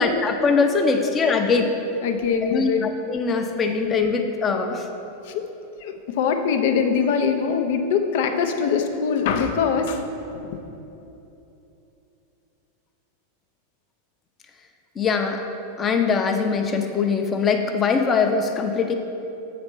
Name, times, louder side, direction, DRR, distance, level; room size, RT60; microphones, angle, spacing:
voice 1, 0.0-1.7 2.4-4.9 15.0-15.4 15.8-18.9, left 5 dB, 25° left, 5 dB, 0.8 m, -22 dB
voice 2, 2.0-2.9 5.2-5.4 5.8-10.0 10.3-10.6, left 6 dB, 65° left, 6 dB, 0.7 m, -23 dB
8.0 x 4.2 x 6.1 m, 2.9 s
hypercardioid pair, 105°, 0 cm